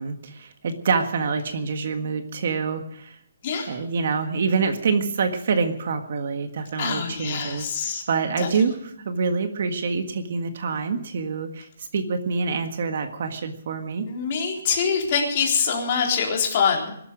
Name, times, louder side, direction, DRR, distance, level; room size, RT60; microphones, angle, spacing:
voice 1, 0.0-3.2 3.7-14.1, right 5 dB, 45° right, 7 dB, 1.6 m, -26 dB
voice 2, 3.4-3.7 6.8-8.0 8.4-8.5 14.1-16.9, left 6 dB, 30° left, 0 dB, 3.8 m, -24 dB
22.0 x 13.0 x 5.2 m, 0.71 s
hypercardioid pair, 175°, 0 cm